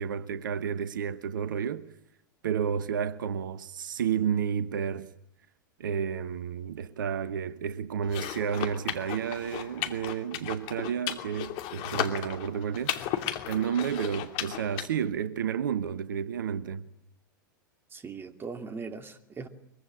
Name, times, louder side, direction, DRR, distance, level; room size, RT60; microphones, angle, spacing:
voice 1, 0.0-1.9 2.4-5.1 5.8-16.9, right 8 dB, 70° right, 1.1 m, -31 dB
sound 1, 8.0-14.9, left 12 dB, 45° left, 2.8 m, -35 dB
voice 2, 17.9-19.5, right 4 dB, 20° right, 2.6 m, -39 dB
24.0 x 23.5 x 8.8 m
figure-of-eight pair, 95°, 11 cm